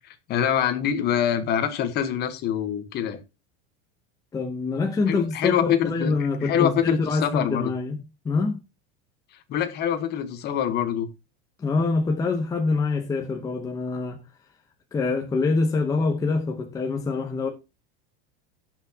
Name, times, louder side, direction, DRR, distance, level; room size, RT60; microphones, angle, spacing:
voice 1, 0.1-3.2 5.1-6.1 6.4-7.7 9.5-11.1, left 9 dB, 30° left, 1.3 m, -25 dB
voice 2, 4.3-8.0 8.2-8.6 11.6-14.2 14.9-17.5, left 3 dB, 10° left, 0.8 m, -25 dB
17.5 x 6.0 x 2.8 m
supercardioid pair, 170°, 34 cm